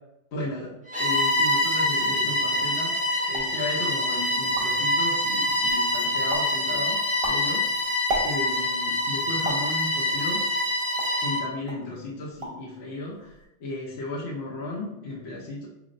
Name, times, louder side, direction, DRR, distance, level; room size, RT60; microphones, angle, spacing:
voice 1, 0.3-0.7 1.0-3.0 3.3-7.7 8.2-10.4 11.2-13.3 13.6-15.7, left 2 dB, 65° left, -5 dB, 1.0 m, -34 dB
Bowed string instrument, 0.9-11.5, left 1 dB, 10° right, 0.4 m, -25 dB
sound 1, 3.3-3.6 4.1-4.2 4.4-4.9 5.4-5.9 6.3-6.6 7.0-8.7 9.4-9.7 10.4-11.3 11.7-11.9 12.2-12.7 12.9-13.4, right 1 dB, 60° right, 0.9 m, -34 dB
4.2 x 3.0 x 2.5 m, 0.89 s
omnidirectional pair, 1.2 m